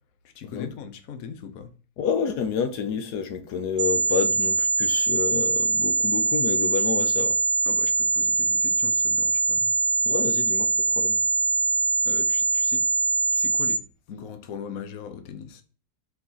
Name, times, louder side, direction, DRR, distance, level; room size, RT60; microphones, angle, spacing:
voice 1, 0.2-1.7 7.6-9.7 12.0-12.8 13.3-13.8 14.1-15.6, left 7 dB, 65° left, 1.3 m, -40 dB
voice 2, 2.0-7.4 10.0-11.2, left 7 dB, 80° left, 1.4 m, -29 dB
sound 1, 3.8-13.8, right 3 dB, 55° right, 0.5 m, -23 dB
6.5 x 4.7 x 5.6 m
omnidirectional pair, 1.7 m